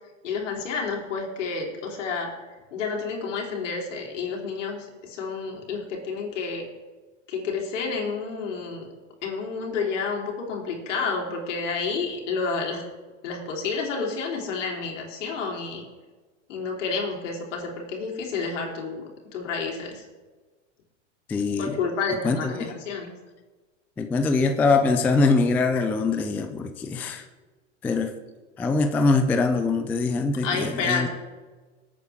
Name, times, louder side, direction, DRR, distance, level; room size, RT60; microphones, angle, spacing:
voice 1, 0.2-2.3 2.7-6.6 7.3-8.9 9.2-12.8 13.2-15.8 16.5-19.0 19.3-20.0 21.6-23.1 30.4-31.1, left 4 dB, 70° left, -1 dB, 3.7 m, -30 dB
voice 2, 21.3-21.8 22.2-22.7 24.0-27.2 27.8-28.1 28.6-31.1, left 3 dB, 5° left, 6 dB, 0.3 m, -23 dB
20.0 x 8.7 x 3.5 m, 1.3 s
hypercardioid pair, 125°, 38 cm